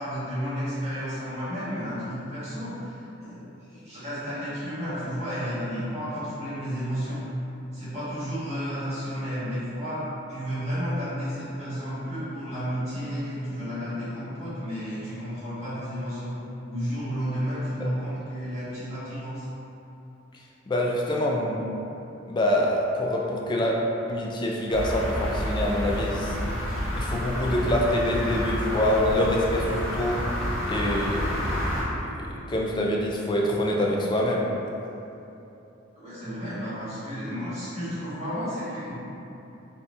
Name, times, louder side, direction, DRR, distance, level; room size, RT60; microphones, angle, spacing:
voice 1, 0.0-7.2 7.7-10.0 10.3-16.3 16.7-19.4 20.9-21.2 35.9-38.9, equal, 35° right, -12 dB, 1.4 m, -32 dB
voice 2, 20.7-21.6 22.3-23.8 24.1-26.4 27.0-30.2 30.7-32.1 32.5-34.4, left 1 dB, 25° left, -2 dB, 0.3 m, -25 dB
sound 1, 24.7-31.8, equal, ahead, 0.8 m, -29 dB
4.2 x 2.3 x 2.6 m, 2.9 s
head